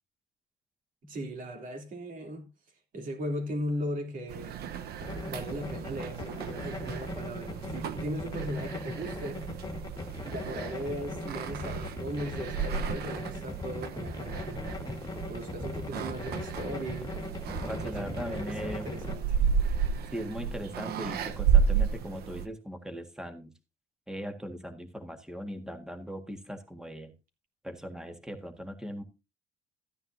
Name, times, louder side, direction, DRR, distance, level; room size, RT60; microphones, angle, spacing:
voice 1, 1.0-2.5 2.9-4.6 5.3-9.4 10.2-14.6 15.3-17.1 17.7-19.4, equal, 55° right, 3.0 m, -38 dB
sound 1, 4.3-22.5, right 7 dB, 70° right, 1.0 m, -33 dB
sound 2, 5.0-19.2, left 3 dB, 25° left, 1.9 m, -39 dB
voice 2, 17.7-19.0 20.1-23.5 24.1-27.1 27.6-29.0, equal, 5° right, 1.7 m, -39 dB
14.0 x 9.6 x 2.7 m
cardioid pair, 110°, 17 cm